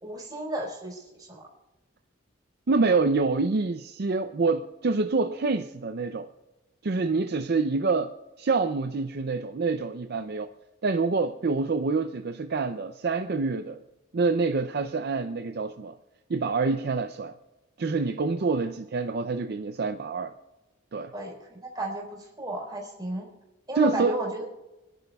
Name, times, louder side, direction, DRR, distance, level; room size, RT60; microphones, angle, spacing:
voice 1, 0.0-1.5 18.4-18.5 21.1-23.3 23.7-24.4, right 1 dB, 20° right, 4.3 m, -33 dB
voice 2, 2.7-6.3 6.8-10.5 10.8-13.8 14.1-15.9 16.3-17.3 17.8-20.3 20.9-21.1 23.7-24.2, right 4 dB, 55° right, 0.5 m, -26 dB
28.0 x 11.0 x 2.3 m
head